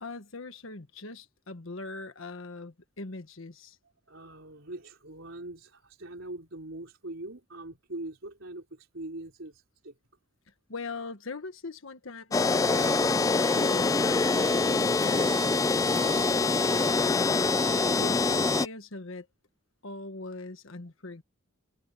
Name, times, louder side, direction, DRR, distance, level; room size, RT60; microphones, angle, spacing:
voice 1, 0.0-3.8 10.7-19.3 19.8-21.2, left 2 dB, 75° left, 1.4 m, -41 dB
voice 2, 4.1-9.9, right 2 dB, 70° right, 4.0 m, -42 dB
sound 1, 12.3-18.7, left 3 dB, 15° left, 0.4 m, -25 dB
head